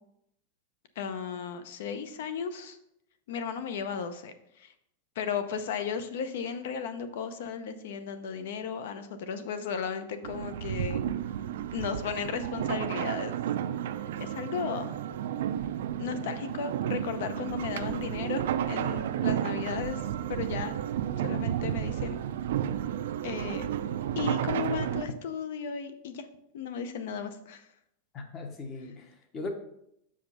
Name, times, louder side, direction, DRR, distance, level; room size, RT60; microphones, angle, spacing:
voice 1, 1.0-2.8 3.3-4.7 5.2-11.0 11.7-13.3 14.2-14.9 16.0-20.0 20.3-20.7 21.2-22.2 23.2-23.7 24.2-26.3 26.5-27.7, left 6 dB, 60° left, 10 dB, 0.7 m, -35 dB
sound 1, 10.2-25.0, right 10 dB, 70° right, 0.4 m, -32 dB
voice 2, 28.1-29.5, left 3 dB, 20° left, 6 dB, 0.8 m, -39 dB
6.8 x 5.0 x 4.1 m, 0.78 s
supercardioid pair, 175°, 0 cm